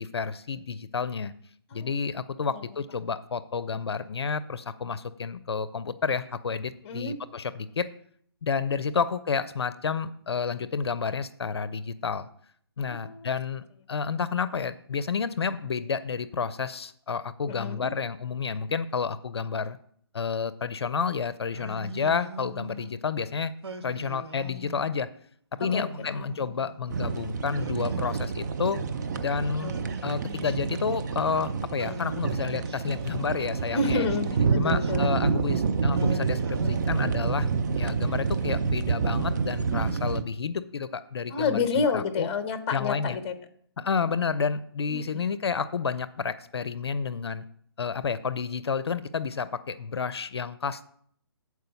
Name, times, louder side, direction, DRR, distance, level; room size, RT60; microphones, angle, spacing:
voice 1, 0.0-1.3 1.7-7.9 8.4-12.3 12.8-19.8 20.1-23.5 23.8-25.1 25.6-28.8 29.2-29.7 30.0-34.1 34.6-37.5 37.8-42.3 42.7-43.2 43.8-47.4 47.8-50.9, left 5 dB, 70° left, 15 dB, 0.5 m, -30 dB
voice 2, 6.8-7.2 12.8-13.3 17.5-17.9 25.6-26.3 33.7-35.0 41.3-43.3 44.9-45.3, left 4 dB, 25° left, 9 dB, 0.8 m, -29 dB
Singing, 21.5-23.0 23.6-25.0 25.6-26.9 27.5-29.0 29.6-31.4 31.8-33.4 33.9-35.6 35.9-37.6, right 1 dB, 80° right, 0.9 m, -41 dB
sound 1, 26.9-40.2, right 5 dB, 45° right, 0.6 m, -28 dB
7.6 x 4.7 x 6.9 m, 0.63 s
figure-of-eight pair, 150°, 14 cm